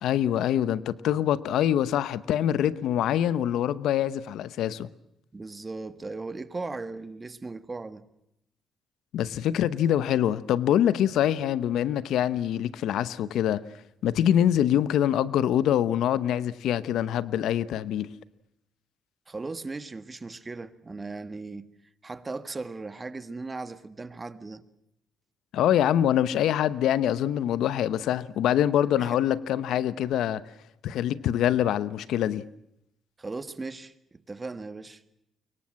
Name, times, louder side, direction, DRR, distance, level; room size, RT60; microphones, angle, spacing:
voice 1, 0.0-4.9 9.1-13.6 14.0-18.1 25.5-30.4 30.8-32.4, left 10 dB, 80° left, 0.9 m, -24 dB
voice 2, 5.3-8.0 19.3-21.7 22.0-24.6 29.0-29.2 33.2-35.0, right 3 dB, 25° right, 1.5 m, -37 dB
24.5 x 23.0 x 7.6 m
cardioid pair, 90°, 0 cm